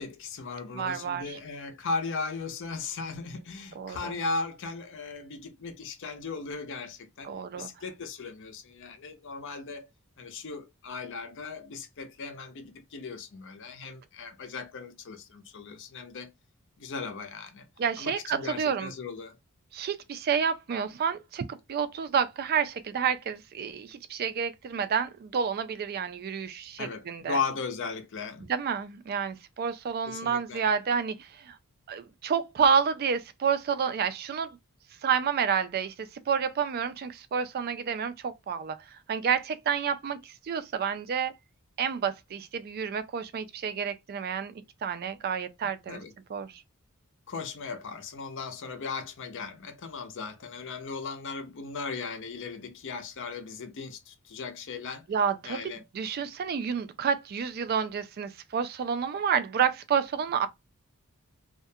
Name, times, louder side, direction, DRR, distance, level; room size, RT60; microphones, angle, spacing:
voice 1, 0.0-9.9 10.2-16.3 16.8-17.7 18.0-19.4 26.8-28.5 30.1-30.7 45.9-46.1 47.3-55.1 55.4-55.8, left 4 dB, 55° left, 0.5 m, -37 dB
voice 2, 0.7-1.4 3.8-4.1 7.2-7.7 17.8-18.9 19.7-27.4 28.5-31.6 31.9-34.6 35.0-41.3 41.8-44.5 44.8-46.0 46.3-46.6 55.1-60.5, right 7 dB, 45° right, 0.3 m, -29 dB
2.3 x 2.1 x 2.6 m
head